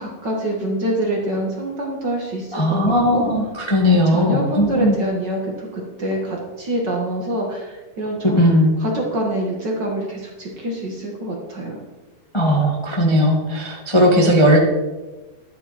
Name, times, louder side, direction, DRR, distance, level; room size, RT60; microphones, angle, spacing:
voice 1, 0.0-3.2 4.1-8.4 8.8-11.8, right 1 dB, 40° right, -1 dB, 1.9 m, -25 dB
voice 2, 2.5-5.0 8.2-8.7 12.3-14.6, equal, 15° left, -2 dB, 1.0 m, -17 dB
11.5 x 10.0 x 4.3 m, 1.1 s
omnidirectional pair, 3.7 m